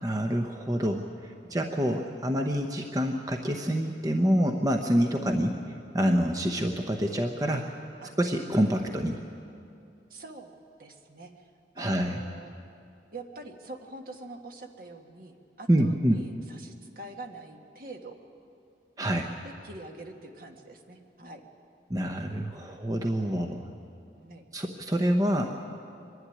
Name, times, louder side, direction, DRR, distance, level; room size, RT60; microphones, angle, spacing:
voice 1, 0.0-5.5 5.9-7.7 8.2-9.2 11.8-12.2 15.7-16.2 19.0-19.3 21.9-23.7 24.5-25.6, equal, 20° right, 3 dB, 0.8 m, -27 dB
voice 2, 10.1-10.5 10.8-11.5 11.8-12.5 13.1-18.2 19.4-21.5 22.7-22.8 24.2-24.4, right 2 dB, 55° right, 3 dB, 1.6 m, -45 dB
24.0 x 11.5 x 10.0 m, 2.5 s
head